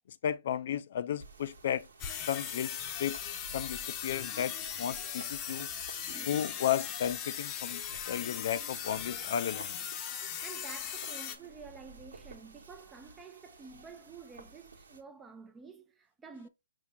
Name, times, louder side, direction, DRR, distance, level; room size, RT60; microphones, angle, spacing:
voice 1, 0.2-1.9 2.3-3.2 3.5-5.7 6.3-9.8, left 10 dB, 55° left, 0.4 m, -34 dB
sound 1, 1.2-15.0, right 3 dB, 80° right, 1.4 m, -54 dB
sound 2, 2.0-11.4, left 8 dB, 25° left, 0.8 m, -39 dB
voice 2, 6.1-6.6 10.2-16.5, right 5 dB, 15° right, 0.6 m, -50 dB
5.6 x 2.7 x 3.3 m
hypercardioid pair, 140°, 0 cm